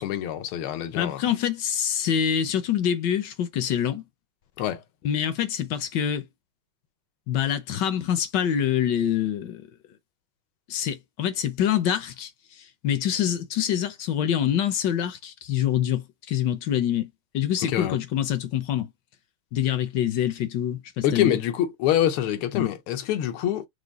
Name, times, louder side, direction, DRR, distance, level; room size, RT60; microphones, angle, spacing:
voice 1, 0.0-1.2 4.6-4.8 17.6-18.0 21.0-23.7, left 11 dB, 90° left, 1.6 m, -25 dB
voice 2, 1.0-4.0 5.0-6.2 7.3-9.7 10.7-12.3 12.8-18.9 19.5-21.4 22.5-22.7, left 9 dB, 70° left, 1.1 m, -25 dB
4.8 x 2.1 x 4.0 m
omnidirectional pair, 2.3 m